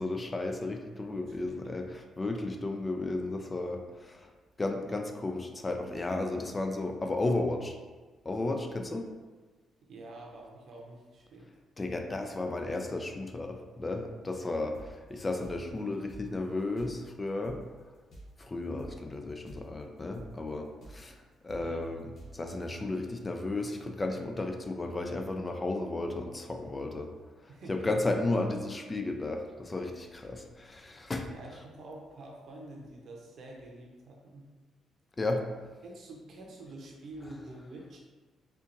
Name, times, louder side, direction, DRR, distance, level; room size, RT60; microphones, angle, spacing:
voice 1, 0.0-4.3 4.6-7.8 8.2-9.1 11.8-17.6 18.4-22.0 22.3-27.1 27.4-31.3 35.2-35.4, left 2 dB, 25° left, 4 dB, 0.3 m, -34 dB
voice 2, 9.8-11.5 21.5-21.9 27.5-27.9 31.3-34.4 35.8-38.0, right 2 dB, 60° right, -1 dB, 0.8 m, -47 dB
sound 1, 14.6-19.8 20.1-22.5, right 1 dB, 65° left, 1.0 m, -52 dB
4.3 x 2.5 x 2.6 m, 1.3 s
cardioid pair, 90°, 0 cm